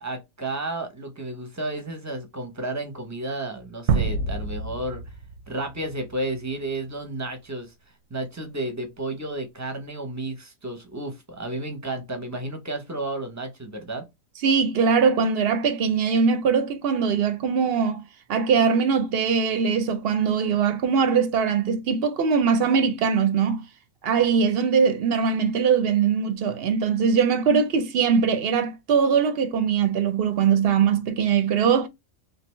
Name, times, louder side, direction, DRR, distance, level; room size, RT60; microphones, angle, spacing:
voice 1, 0.0-5.0 5.5-7.7 8.1-14.0, right 2 dB, 20° right, 0.6 m, -32 dB
sound 1, 3.9-6.3, right 5 dB, 90° right, 1.0 m, -27 dB
voice 2, 14.4-18.0 18.3-23.6 24.0-31.9, right 6 dB, 60° right, 0.6 m, -21 dB
3.4 x 2.7 x 3.0 m
omnidirectional pair, 1.4 m